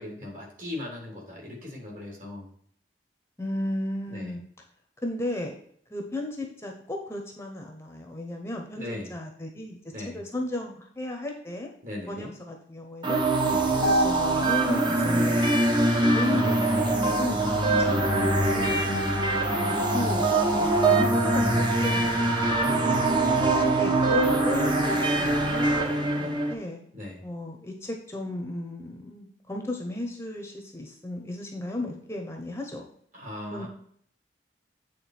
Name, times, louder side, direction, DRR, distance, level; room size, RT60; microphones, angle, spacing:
voice 1, 0.0-2.5 4.1-4.4 8.7-9.1 9.9-10.2 11.8-12.3 13.4-13.8 22.4-23.6 26.9-27.2 33.1-33.7, left 1 dB, 45° right, -1 dB, 3.3 m, -38 dB
voice 2, 3.4-4.4 5.0-5.5 5.9-8.8 9.1-9.8 10.0-11.7 12.1-13.2 13.7-15.4 16.1-17.6 17.9-22.4 23.8-26.8 27.2-32.9 33.5-33.7, left 1 dB, 15° left, 2 dB, 1.1 m, -35 dB
sound 1, 13.0-26.5, right 2 dB, 25° right, 1.3 m, -23 dB
8.5 x 3.9 x 6.0 m, 0.63 s
head